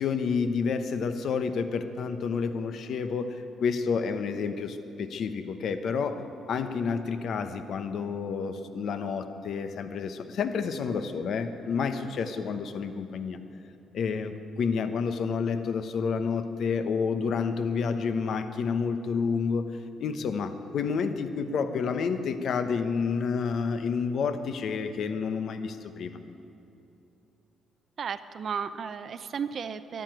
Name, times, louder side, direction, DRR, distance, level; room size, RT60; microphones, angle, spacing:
voice 1, 0.0-6.2 6.5-13.4 13.9-19.7 20.0-26.2, left 5 dB, 65° left, 9 dB, 1.0 m, -29 dB
voice 2, 28.0-30.0, right 6 dB, 55° right, 11 dB, 0.6 m, -34 dB
12.5 x 11.5 x 9.1 m, 2.8 s
cardioid pair, 90°, 0 cm